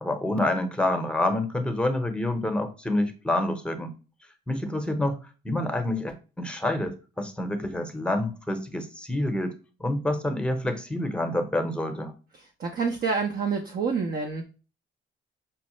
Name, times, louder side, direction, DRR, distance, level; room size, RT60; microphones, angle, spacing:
voice 1, 0.0-3.9 4.5-5.2 5.4-9.5 9.8-12.1, left 1 dB, 5° left, 5 dB, 0.8 m, -27 dB
voice 2, 12.6-14.4, right 5 dB, 50° right, 3 dB, 0.6 m, -27 dB
5.5 x 2.0 x 3.0 m, 0.34 s
cardioid pair, 90°, 20 cm